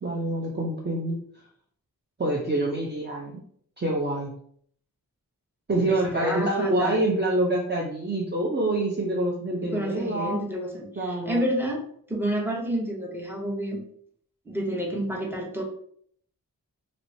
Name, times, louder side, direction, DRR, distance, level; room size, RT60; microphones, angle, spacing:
voice 1, 0.0-1.2 2.2-3.4 3.8-4.3 5.7-10.4 11.0-11.4, right 1 dB, 30° right, -2 dB, 0.5 m, -26 dB
voice 2, 5.9-7.0 9.7-11.8 12.1-13.8 14.5-15.6, right 1 dB, 5° right, -1 dB, 0.8 m, -29 dB
3.0 x 2.9 x 2.7 m, 0.62 s
wide cardioid pair, 55°, 37 cm